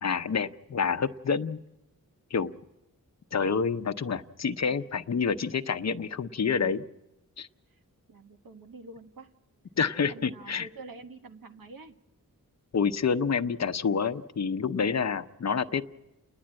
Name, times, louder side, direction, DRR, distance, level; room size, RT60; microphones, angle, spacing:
voice 1, 0.0-1.6 2.3-2.5 3.3-6.8 7.4-7.5 9.8-10.7 12.7-15.8, left 6 dB, 50° left, 11 dB, 0.7 m, -28 dB
voice 2, 8.1-9.3 10.1-12.0, right 3 dB, 75° right, 5 dB, 1.4 m, -47 dB
29.5 x 10.5 x 8.8 m, 0.96 s
wide cardioid pair, 105°, 34 cm